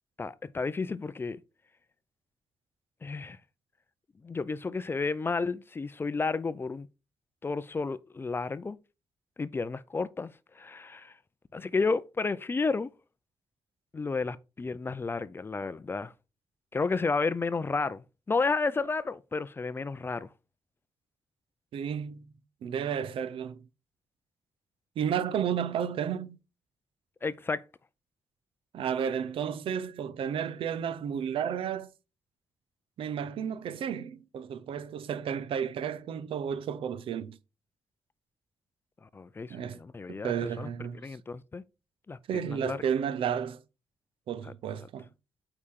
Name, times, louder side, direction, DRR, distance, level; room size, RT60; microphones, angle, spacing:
voice 1, 0.2-1.4 3.0-3.4 4.2-6.9 7.4-8.8 9.4-11.1 11.5-12.9 13.9-16.1 16.7-20.3 27.2-27.6 39.0-40.7 40.9-41.6 42.1-42.8 44.4-44.5, left 4 dB, 25° left, 0.4 m, -32 dB
voice 2, 21.7-22.3 22.6-23.6 25.0-26.4 28.7-31.9 33.0-37.4 39.5-39.8 40.1-41.0 42.3-43.6 44.3-45.0, right 8 dB, 90° right, 0.6 m, -32 dB
8.7 x 4.9 x 3.7 m
wide cardioid pair, 125°, 9 cm